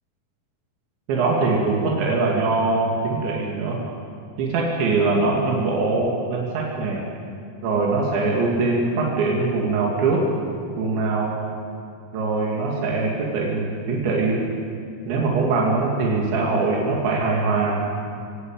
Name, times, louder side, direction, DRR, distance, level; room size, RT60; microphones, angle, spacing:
voice 1, 1.1-3.8 4.4-7.1 7.6-10.3 10.8-11.4 12.1-14.4 15.1-17.9, right 3 dB, 85° right, -2 dB, 4.9 m, -22 dB
24.0 x 18.0 x 9.3 m, 2.4 s
omnidirectional pair, 5.1 m